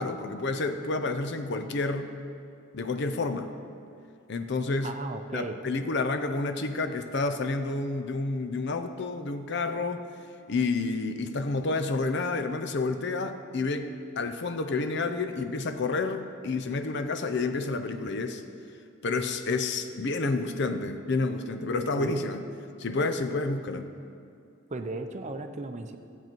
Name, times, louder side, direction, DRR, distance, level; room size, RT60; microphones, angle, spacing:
voice 1, 0.0-2.1 2.7-3.5 4.3-4.9 5.3-10.0 10.5-13.9 14.2-18.4 19.0-22.4 22.8-23.9, left 3 dB, 55° left, 8 dB, 0.6 m, -29 dB
voice 2, 4.8-5.6 21.9-22.2 24.7-26.0, right 2 dB, 35° right, 7 dB, 0.6 m, -35 dB
14.5 x 8.0 x 4.5 m, 2.5 s
head